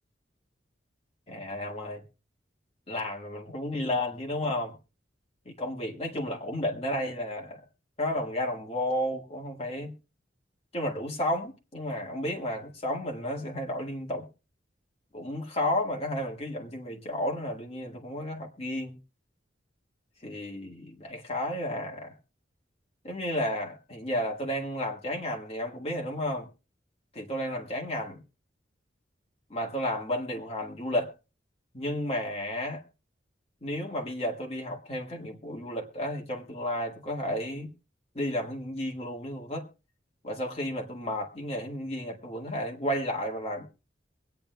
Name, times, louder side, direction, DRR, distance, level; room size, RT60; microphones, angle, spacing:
voice 1, 1.3-2.0 2.9-4.8 5.4-7.6 8.0-9.9 10.7-14.2 15.1-19.0 20.2-22.1 23.0-26.5 27.1-28.2 29.5-31.1 31.7-32.8 33.6-37.7 38.1-39.7 40.2-43.7, left 1 dB, 35° left, 1.6 m, -32 dB
23.5 x 9.2 x 2.2 m
head